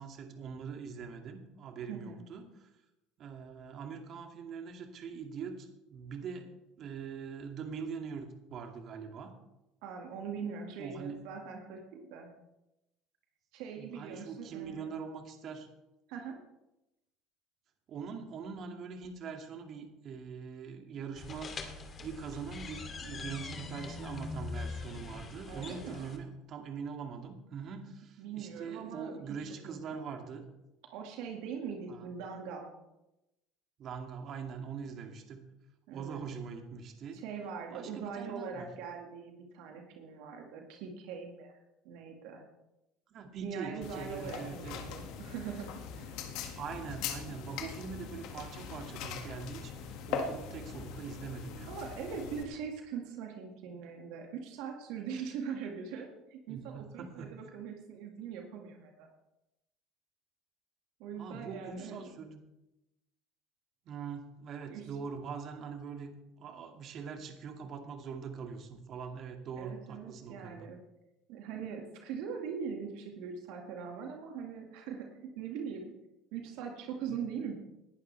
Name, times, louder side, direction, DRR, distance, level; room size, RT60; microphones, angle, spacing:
voice 1, 0.0-2.7 3.2-6.5 6.8-9.3 10.8-11.2 13.8-15.7 17.9-30.4 31.9-32.1 33.8-35.4 35.9-37.2 37.7-38.7 43.1-44.8 46.6-51.7 56.5-57.3 61.2-62.4 63.9-66.1 66.4-70.7, right 6 dB, 50° right, 4 dB, 2.2 m, -43 dB
voice 2, 1.9-2.2 9.8-11.8 12.1-12.3 13.5-14.9 16.1-16.4 25.5-26.1 28.2-29.1 29.6-30.2 30.9-32.7 35.9-36.2 37.1-41.5 41.8-42.4 43.4-46.2 51.7-59.1 61.0-62.1 64.7-64.9 69.6-70.8 71.3-75.9 76.3-77.6, right 6 dB, 70° right, 2 dB, 2.0 m, -41 dB
sound 1, 21.2-26.2, left 4 dB, 35° left, 2.6 m, -42 dB
sound 2, 43.8-52.4, left 6 dB, 65° left, 1.9 m, -41 dB
19.5 x 11.5 x 3.4 m, 0.92 s
hypercardioid pair, 75°, 0 cm